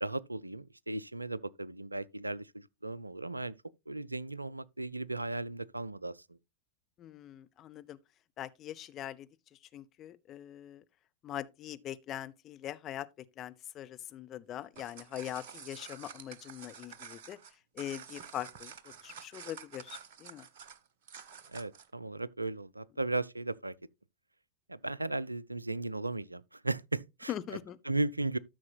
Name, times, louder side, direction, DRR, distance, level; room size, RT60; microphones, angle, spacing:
voice 1, 0.0-3.5 3.9-6.4 21.5-23.8 24.7-27.3 27.9-28.4, right 2 dB, 85° right, 0.4 m, -36 dB
voice 2, 7.0-8.0 8.4-9.3 9.7-10.8 11.2-13.1 13.4-17.4 17.7-20.5 27.3-27.8, left 12 dB, 30° left, 0.7 m, -42 dB
Amo Mag for gun, 14.6-21.9, right 7 dB, 50° right, 1.0 m, -49 dB
13.5 x 6.4 x 2.2 m
figure-of-eight pair, 90°, 0 cm